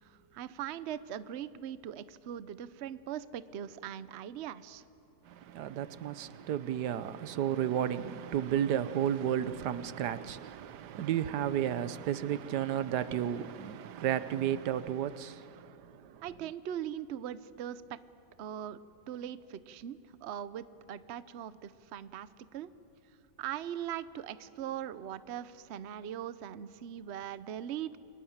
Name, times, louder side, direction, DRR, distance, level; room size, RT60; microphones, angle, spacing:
voice 1, 0.0-4.8 16.2-18.0 18.4-18.8 19.1-22.7 23.4-28.0, right 10 dB, 55° right, 0.8 m, -40 dB
voice 2, 5.2-16.2, right 10 dB, 90° right, 1.4 m, -33 dB
28.5 x 23.5 x 7.3 m
omnidirectional pair, 1.7 m